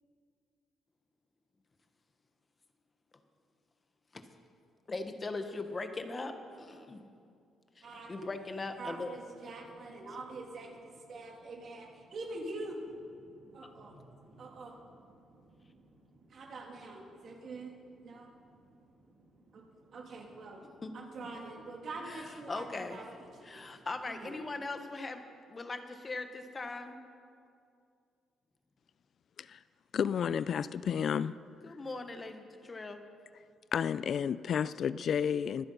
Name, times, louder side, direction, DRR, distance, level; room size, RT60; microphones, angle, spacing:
voice 1, 4.9-7.0 7.8-9.1 20.8-20.9 22.1-23.0 23.4-25.2 25.5-27.0 31.6-33.0, left 3 dB, 30° left, 8 dB, 1.1 m, -40 dB
voice 2, 7.8-8.3 8.8-24.4, right 2 dB, 55° right, -1 dB, 2.9 m, -46 dB
voice 3, 29.9-31.3 33.7-35.7, left 8 dB, 60° left, 17 dB, 0.3 m, -31 dB
23.5 x 7.9 x 5.5 m, 2.4 s
cardioid pair, 90°, 0 cm